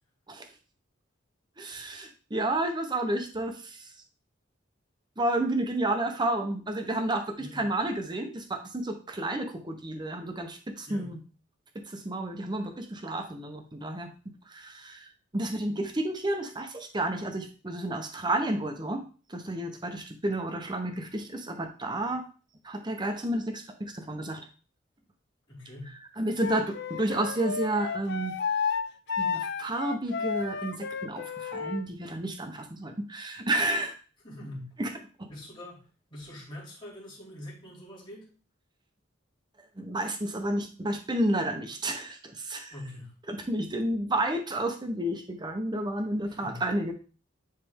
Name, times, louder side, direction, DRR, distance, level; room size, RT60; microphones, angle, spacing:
voice 1, 1.6-3.9 5.2-11.2 11.9-14.1 14.5-19.0 19.3-22.2 22.6-24.4 26.2-28.3 29.2-33.9 34.8-34.9 35.2-35.3 39.8-42.7 43.3-46.9, right 1 dB, 20° right, 6 dB, 0.8 m, -31 dB
voice 2, 10.9-11.2 25.5-26.0 34.2-34.7 35.3-35.8 36.1-38.3 42.7-43.1 46.2-46.6, left 1 dB, 25° left, -5 dB, 2.6 m, -43 dB
Wind instrument woodwind instrument, 26.4-31.8, left 6 dB, 55° left, 0.5 m, -32 dB
9.9 x 3.3 x 3.5 m, 0.37 s
head